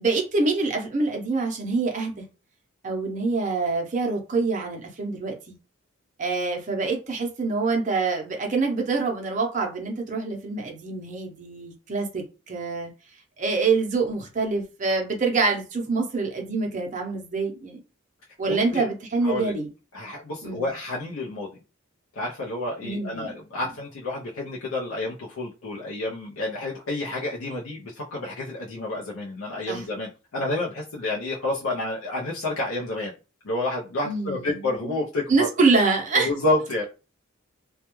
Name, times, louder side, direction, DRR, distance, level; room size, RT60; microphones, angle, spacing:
voice 1, 0.0-2.3 2.8-5.5 6.2-12.9 13.4-17.8 18.4-19.7 20.4-20.7 22.8-23.4 29.7-29.8 34.0-34.7 35.3-36.3, right 3 dB, 35° right, 0.6 m, -25 dB
voice 2, 18.5-18.9 19.2-19.5 19.9-21.6 22.2-33.1 33.4-35.8 36.1-36.8, left 2 dB, 85° left, 0.5 m, -29 dB
2.2 x 2.2 x 2.9 m
head